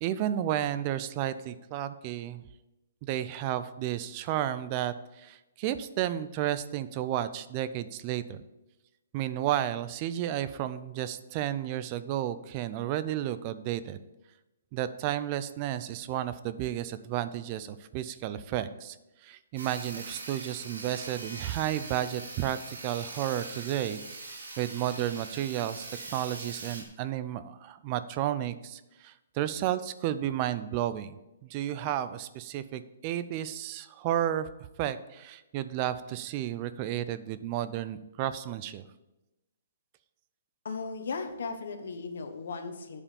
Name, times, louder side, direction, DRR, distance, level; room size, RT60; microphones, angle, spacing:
voice 1, 0.0-2.4 3.1-8.4 9.1-14.0 14.7-19.0 19.2-24.0 24.3-25.9 26.1-31.2 31.4-34.5 34.8-38.8, right 12 dB, 30° right, 13 dB, 0.4 m, -32 dB
Sawing, 19.6-26.8, right 3 dB, 85° right, 2.3 m, -42 dB
voice 2, 40.6-43.0, left 4 dB, 70° left, 7 dB, 1.3 m, -36 dB
8.6 x 5.0 x 6.9 m, 0.98 s
hypercardioid pair, 160°, 0 cm